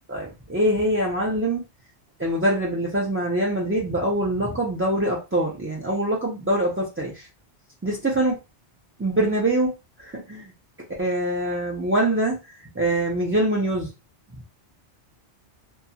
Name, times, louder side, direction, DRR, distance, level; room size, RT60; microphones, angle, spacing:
voice 1, 0.1-1.6 2.2-7.3 7.8-8.4 9.0-9.7 10.0-10.5 11.0-13.9, right 1 dB, 20° right, -3 dB, 0.3 m, -24 dB
2.8 x 2.3 x 2.7 m, 0.27 s
omnidirectional pair, 1.1 m